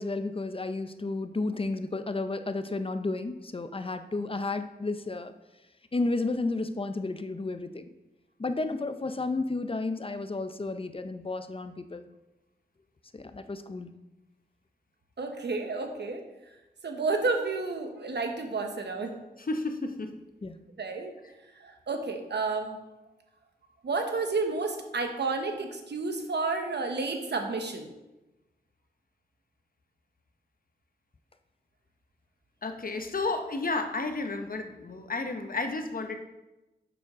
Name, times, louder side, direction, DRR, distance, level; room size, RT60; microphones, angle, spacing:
voice 1, 0.0-5.3 5.9-7.8 8.4-12.1 13.1-13.9 20.4-20.6, left 3 dB, 30° left, 10 dB, 0.5 m, -32 dB
voice 2, 15.2-16.2 16.8-19.1 20.8-21.1 21.6-22.8 23.8-27.9, right 3 dB, 80° right, 5 dB, 0.9 m, -31 dB
voice 3, 19.4-20.2 32.6-36.2, left 3 dB, 55° left, 6 dB, 0.8 m, -32 dB
6.9 x 6.2 x 3.6 m, 1.0 s
cardioid pair, 45°, 17 cm